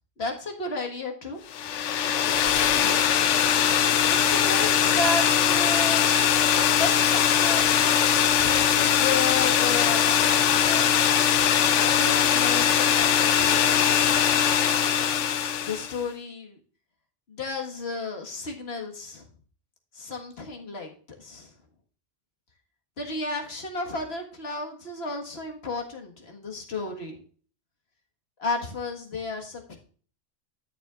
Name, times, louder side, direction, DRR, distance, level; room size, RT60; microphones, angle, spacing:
voice 1, 0.2-1.4 2.5-3.7 4.0-6.1 6.7-10.9 11.8-14.2 15.6-16.6 17.3-19.3 19.9-21.5 23.0-27.2 28.4-29.8, left 3 dB, 55° left, 1 dB, 2.0 m, -33 dB
sound 1, 1.5-16.0, left 9 dB, 75° left, 1.0 m, -21 dB
12.5 x 7.5 x 2.5 m, 0.42 s
omnidirectional pair, 1.3 m